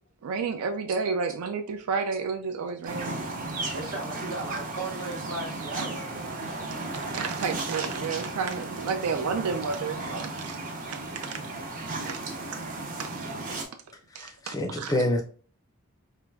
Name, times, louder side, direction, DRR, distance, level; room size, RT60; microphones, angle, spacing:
voice 1, 0.2-3.2 6.9-10.6 10.9-11.4 12.0-12.2 13.0-13.3 14.1-14.9, right 5 dB, 90° right, 0.4 m, -31 dB
sound 1, 2.9-13.7, right 2 dB, 35° right, 0.6 m, -35 dB
voice 2, 3.7-6.6 12.3-12.4, right 2 dB, 70° right, 1.0 m, -36 dB
voice 3, 14.2-15.2, left 1 dB, 15° left, 0.3 m, -27 dB
4.4 x 2.5 x 2.2 m
head